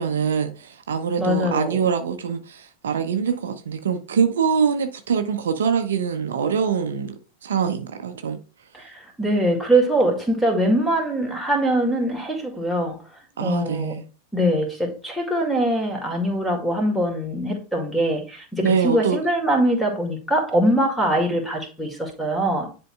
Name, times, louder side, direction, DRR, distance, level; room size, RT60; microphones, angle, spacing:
voice 1, 0.0-8.4 13.4-14.1 18.6-19.2, right 6 dB, 65° right, 0.6 m, -24 dB
voice 2, 1.2-1.8 8.7-13.0 13.4-13.9 14.3-22.7, right 1 dB, 5° left, 2.1 m, -22 dB
10.0 x 4.4 x 2.3 m
figure-of-eight pair, 90°, 0 cm